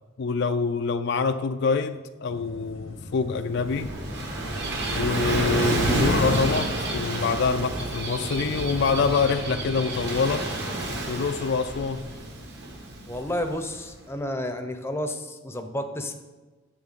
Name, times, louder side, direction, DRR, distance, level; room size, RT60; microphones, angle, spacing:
voice 1, 0.2-3.9 4.9-10.4 11.1-12.0, left 4 dB, 55° left, 8 dB, 0.4 m, -25 dB
sound 1, 2.3-11.0, left 1 dB, 85° left, 1.1 m, -42 dB
Gull seagull / Waves surf, 3.3-13.9, right 1 dB, 55° right, 1.6 m, -29 dB
voice 2, 13.1-16.1, left 1 dB, 10° left, 7 dB, 0.7 m, -31 dB
10.0 x 7.2 x 4.1 m, 1.3 s
head